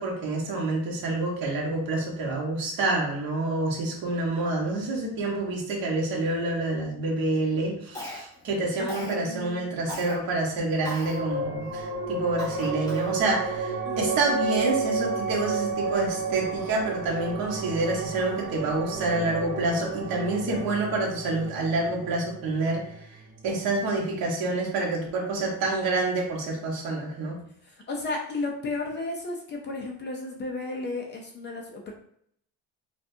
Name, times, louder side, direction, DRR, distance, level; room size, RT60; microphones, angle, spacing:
voice 1, 0.0-22.9 23.4-27.3, right 2 dB, 60° right, -2 dB, 1.5 m, -28 dB
Cough, 7.9-8.5 8.9-9.2 9.9-10.1 10.8-11.2 11.7-11.8 12.4-13.2, left 1 dB, 10° left, 0.9 m, -38 dB
voice 2, 8.8-9.8 13.8-14.3 27.6-31.9, left 2 dB, 30° left, 1 dB, 0.5 m, -34 dB
sound 1, 10.8-23.7, right 4 dB, 30° right, 0.7 m, -32 dB
5.9 x 2.3 x 2.7 m, 0.67 s
cardioid pair, 180°, 39 cm